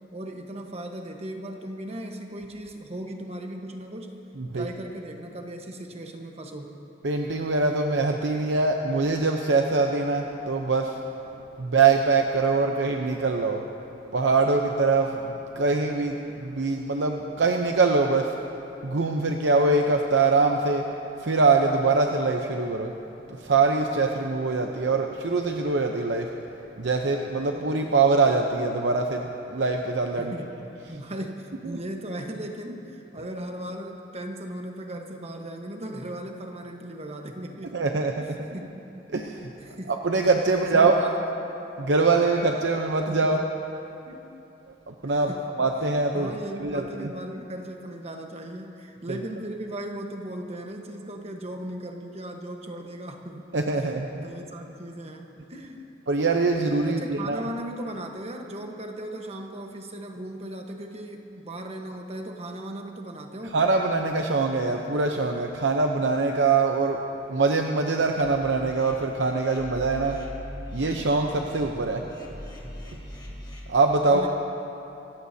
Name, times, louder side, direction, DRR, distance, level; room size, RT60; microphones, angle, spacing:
voice 1, 0.1-4.2 4.5-6.8 30.2-30.5 30.9-37.7 38.5-39.0 39.6-40.0 40.5-41.4 43.1-43.2 44.1-44.3 45.1-45.5 46.1-53.5 53.8-55.9 56.8-63.6 74.0-74.3, right 1 dB, 35° right, 3 dB, 1.2 m, -37 dB
voice 2, 7.0-11.0 11.6-13.6 14.1-18.3 18.8-20.9 21.2-22.9 23.3-26.3 26.8-30.3 37.7-38.5 39.1-39.5 39.9-41.0 41.8-43.4 44.9-45.3 45.6-46.3 46.6-47.1 49.1-49.2 53.5-54.3 56.1-57.4 63.5-67.0 67.3-70.2 70.7-72.0 73.7-74.3, right 3 dB, 80° right, 2 dB, 0.7 m, -23 dB
sound 1, 68.2-73.6, equal, 25° left, 2.1 m, -41 dB
26.0 x 14.5 x 2.8 m, 2.9 s
head